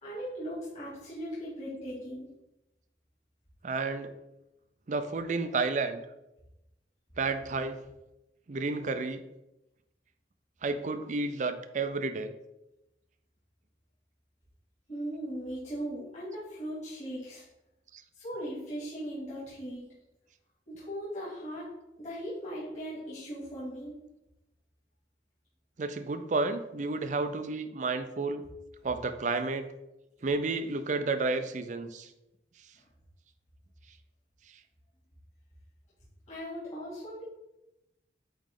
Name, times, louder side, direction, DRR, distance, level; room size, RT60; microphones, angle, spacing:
voice 1, 0.0-2.3 14.9-17.4 18.1-19.9 20.7-21.7 22.0-24.0 32.7-32.9 36.3-37.2, equal, 40° left, -9 dB, 2.2 m, -38 dB
voice 2, 3.6-4.2 4.9-6.0 7.2-7.8 8.5-9.2 10.6-12.3 17.9-18.0 25.8-28.4 28.8-29.7 30.2-32.1, right 3 dB, 45° right, 9 dB, 0.5 m, -31 dB
8.7 x 3.1 x 3.7 m, 0.94 s
head